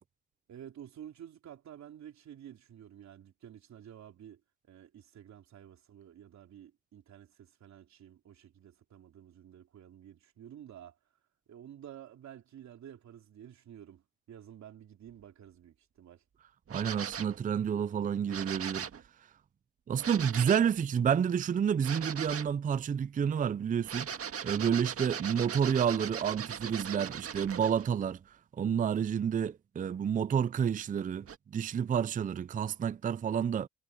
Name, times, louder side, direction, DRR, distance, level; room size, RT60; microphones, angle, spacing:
voice 1, 0.5-4.4 4.7-11.0 11.5-16.2 20.0-20.6, right 10 dB, 65° right, 3.2 m, -51 dB
voice 2, 16.7-18.9 19.9-24.1 24.4-33.7, right 8 dB, 30° right, 0.4 m, -30 dB
sound 1, 16.7-17.4 18.3-19.0 20.0-20.7 21.8-22.5 23.8-27.9 31.2-31.4, right 7 dB, 50° right, 1.8 m, -39 dB
cardioid pair, 90°, 30 cm